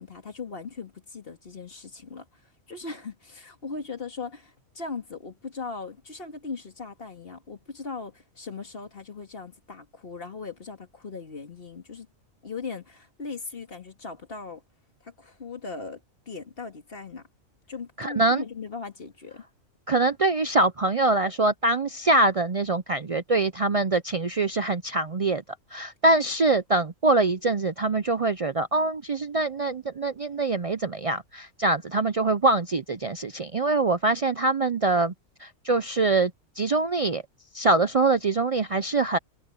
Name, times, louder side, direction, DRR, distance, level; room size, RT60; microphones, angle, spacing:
voice 1, 0.0-2.3 2.7-12.1 12.4-14.6 15.0-16.0 16.3-17.3 17.7-19.4, left 4 dB, 45° left, 2.2 m, -38 dB
voice 2, 18.0-18.4 19.9-25.4 25.7-35.1 35.4-36.3 36.6-37.2 37.5-39.2, right 2 dB, 65° right, 0.3 m, -24 dB
omnidirectional pair, 1.4 m